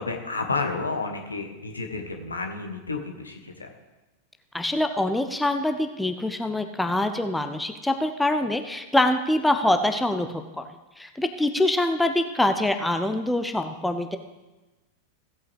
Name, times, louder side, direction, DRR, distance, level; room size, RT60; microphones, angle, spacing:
voice 1, 0.0-3.7, left 3 dB, 75° left, 4 dB, 1.3 m, -31 dB
voice 2, 4.5-10.7 11.0-14.2, left 1 dB, 5° left, 7 dB, 0.7 m, -24 dB
16.0 x 8.6 x 3.4 m, 1.1 s
figure-of-eight pair, 90°, 0 cm